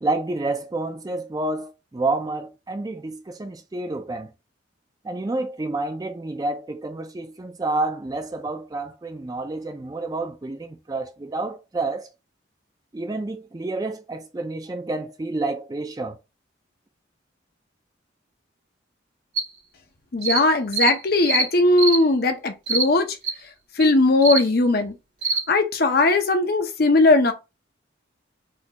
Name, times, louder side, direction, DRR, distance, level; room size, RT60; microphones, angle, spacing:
voice 1, 0.0-4.3 5.0-12.1 12.9-16.2, right 2 dB, 20° right, 0.3 m, -29 dB
sound 1, 19.4-19.5 20.2-20.4 20.7-20.9 21.3-21.5 21.8-22.0 22.7-22.9 23.2-23.3 23.8-23.9 24.2-24.4 25.2-25.4, right 4 dB, 75° right, 1.3 m, -23 dB
voice 2, 20.1-23.2 23.8-24.9 25.5-27.3, left 2 dB, 50° left, 0.6 m, -19 dB
4.2 x 2.3 x 2.8 m
head